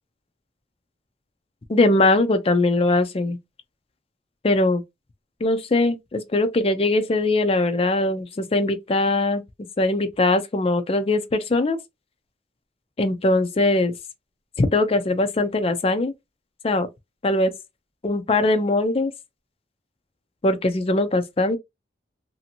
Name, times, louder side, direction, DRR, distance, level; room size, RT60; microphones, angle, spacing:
voice 1, 1.7-3.4 4.4-4.8 5.4-9.4 9.8-11.8 13.0-13.9 14.6-16.1 16.6-16.9 17.2-17.5 18.0-19.1 20.4-21.6, left 2 dB, 35° left, 0.4 m, -21 dB
2.7 x 2.5 x 2.7 m
head